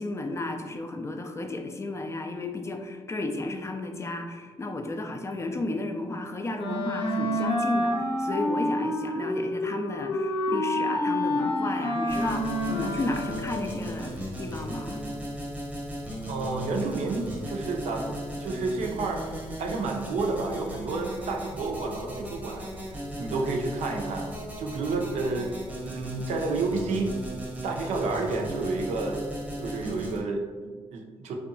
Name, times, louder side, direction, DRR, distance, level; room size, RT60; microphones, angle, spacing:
voice 1, 0.0-15.1, left 2 dB, 25° left, 4 dB, 0.3 m, -33 dB
Wind instrument woodwind instrument, 6.6-13.7, left 1 dB, 55° left, 0.7 m, -28 dB
sound 1, 12.1-30.2, equal, 10° right, 0.9 m, -37 dB
voice 2, 16.3-19.2 19.6-22.7 23.2-25.5 25.8-27.1 27.6-29.2 29.6-31.3, right 3 dB, 70° right, 2 dB, 0.4 m, -30 dB
2.7 x 2.2 x 2.5 m, 1.5 s
supercardioid pair, 60°, 12 cm